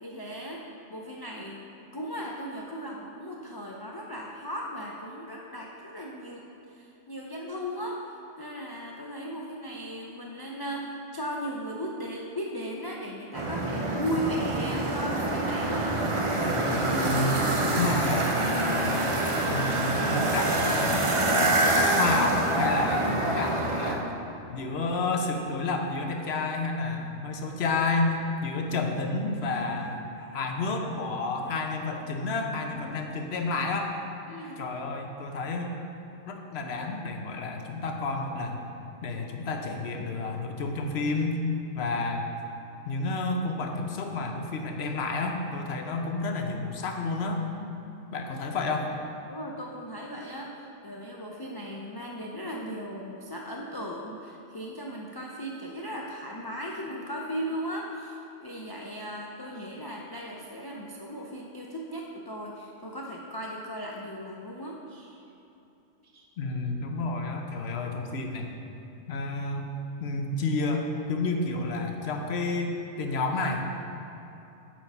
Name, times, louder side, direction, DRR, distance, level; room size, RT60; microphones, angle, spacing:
voice 1, 0.0-1.6 1.9-16.0 34.3-34.6 49.3-65.2 66.1-66.2, equal, 35° left, -2 dB, 0.4 m, -37 dB
sound 1, 13.3-23.9, right 1 dB, 35° right, 0.6 m, -26 dB
voice 2, 17.0-18.3 18.7-21.1 22.0-24.1 24.5-33.9 34.6-35.8 36.3-38.7 39.0-41.4 41.7-42.3 42.9-47.4 48.1-48.9 66.4-68.5 69.1-69.7 70.0-73.7, left 3 dB, 65° left, 3 dB, 1.0 m, -30 dB
8.5 x 4.6 x 5.4 m, 2.9 s
omnidirectional pair, 1.2 m